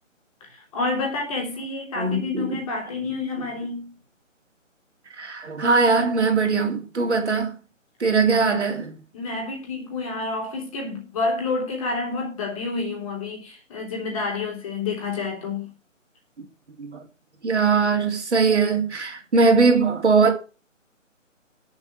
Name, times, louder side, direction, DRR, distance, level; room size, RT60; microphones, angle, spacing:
voice 1, 0.5-3.9 9.1-15.7, left 3 dB, 25° left, 3.3 m, -29 dB
voice 2, 1.9-2.6 3.0-3.1 5.1-7.6 8.0-9.0 16.8-17.0 17.4-20.3, right 4 dB, 60° right, 3.2 m, -21 dB
8.9 x 7.2 x 8.2 m
figure-of-eight pair, 155°, 39 cm